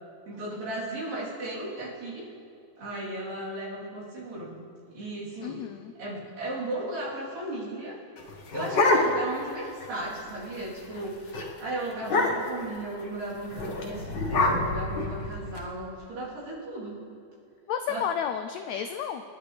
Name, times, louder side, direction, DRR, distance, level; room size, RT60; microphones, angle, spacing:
voice 1, 0.3-2.3 2.8-4.6 4.9-5.6 6.0-8.0 8.5-17.0 17.9-18.0, right 1 dB, 85° right, -8 dB, 5.4 m, -35 dB
voice 2, 5.4-5.9 17.7-19.2, left 8 dB, 85° left, 7 dB, 1.6 m, -31 dB
sound 1, 8.2-9.4 9.8-9.9 10.2-10.5 10.8-11.0 11.3-11.5 12.0-12.6 13.5-15.6, left 2 dB, 60° left, 1.1 m, -26 dB
27.0 x 11.0 x 3.4 m, 2.4 s
omnidirectional pair, 3.8 m